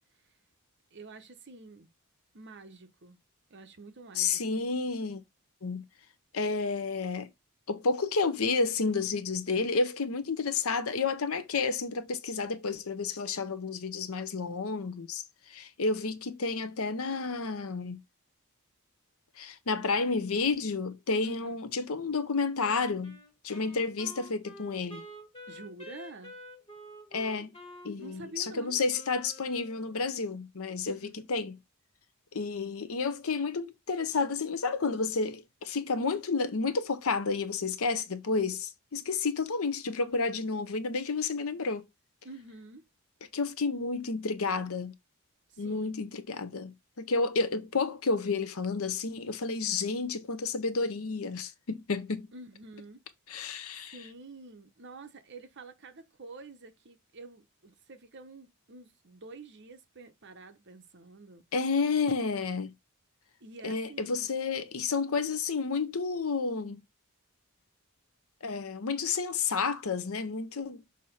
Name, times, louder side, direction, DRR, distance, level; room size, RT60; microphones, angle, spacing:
voice 1, 0.9-1.9 2.3-3.2 3.5-4.6 21.2-21.5 25.5-26.4 28.0-28.8 30.8-31.2 42.2-42.9 45.5-45.9 52.3-53.0 53.9-61.4 63.4-64.3, right 2 dB, 50° right, 0.9 m, -48 dB
voice 2, 4.2-5.2 5.6-5.8 6.3-7.3 7.7-18.0 19.4-23.2 23.4-25.1 27.1-27.5 27.8-31.6 32.3-41.9 43.3-44.9 45.6-52.3 53.3-54.0 61.5-62.7 63.6-66.8 68.4-70.8, left 4 dB, 70° left, 0.8 m, -31 dB
Wind instrument woodwind instrument, 22.6-30.1, equal, 25° left, 1.8 m, -49 dB
6.4 x 2.9 x 5.5 m
head